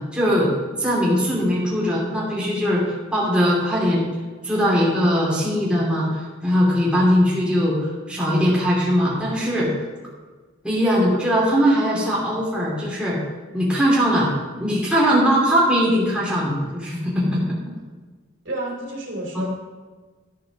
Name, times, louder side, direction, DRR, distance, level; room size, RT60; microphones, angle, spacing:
voice 1, 0.1-0.5 0.8-4.1 4.4-9.7 10.6-13.2 13.5-14.3 14.6-17.4 19.3-19.4, equal, 5° right, -6 dB, 2.8 m, -20 dB
voice 2, 18.4-19.5, right 1 dB, 65° right, -1 dB, 3.1 m, -30 dB
12.0 x 6.6 x 6.2 m, 1.4 s
head